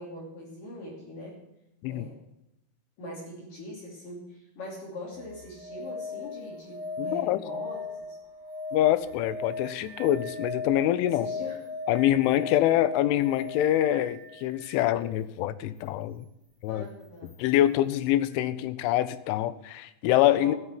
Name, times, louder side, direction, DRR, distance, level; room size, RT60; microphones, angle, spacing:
voice 1, 0.0-1.4 1.9-2.2 3.0-8.2 11.0-11.6 16.7-17.3 18.3-18.5 20.3-20.6, left 1 dB, 50° left, -2 dB, 4.0 m, -42 dB
sound 1, 5.1-14.9 17.2-17.3, left 3 dB, 20° right, 2.3 m, -38 dB
voice 2, 7.0-7.4 8.7-11.3 11.9-16.3 16.6-16.8 17.4-20.5, left 13 dB, 85° left, 14 dB, 3.2 m, -25 dB
14.0 x 7.4 x 9.8 m, 0.87 s
omnidirectional pair, 5.5 m